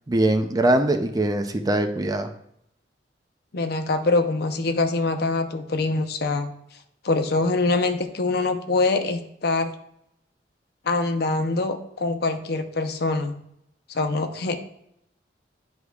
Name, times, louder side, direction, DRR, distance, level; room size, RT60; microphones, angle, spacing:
voice 1, 0.1-2.3, right 1 dB, 20° right, 7 dB, 0.5 m, -22 dB
voice 2, 3.5-6.5 7.0-9.7 10.8-13.3 13.9-14.6, left 3 dB, 65° left, 7 dB, 0.7 m, -24 dB
10.0 x 4.7 x 2.4 m, 0.76 s
head